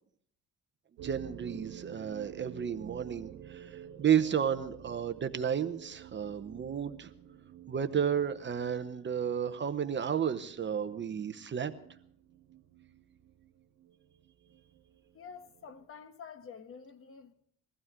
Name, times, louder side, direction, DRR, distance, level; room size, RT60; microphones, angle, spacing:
voice 1, 1.0-7.1 7.7-11.7, right 8 dB, 30° right, 0.9 m, -32 dB
sound 1, 1.0-15.9, right 10 dB, 90° right, 1.4 m, -51 dB
voice 2, 15.1-17.3, left 6 dB, 35° left, 1.3 m, -48 dB
22.0 x 15.5 x 3.7 m
cardioid pair, 140°, 37 cm